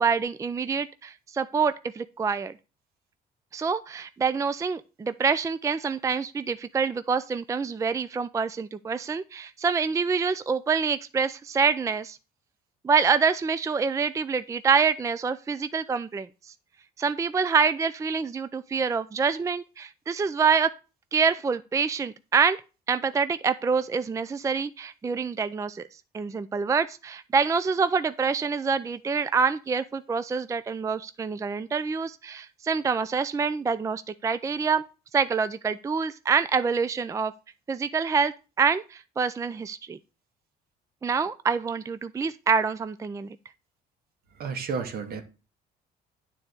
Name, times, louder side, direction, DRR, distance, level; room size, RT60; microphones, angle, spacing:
voice 1, 0.0-2.5 3.5-12.2 12.8-16.5 17.0-20.7 21.1-22.6 22.9-25.8 26.1-34.8 35.1-37.3 37.7-40.0 41.0-43.4, right 5 dB, 20° right, 0.4 m, -26 dB
voice 2, 44.4-45.2, right 5 dB, 65° right, 1.8 m, -31 dB
9.4 x 4.1 x 6.6 m
cardioid pair, 110°, 17 cm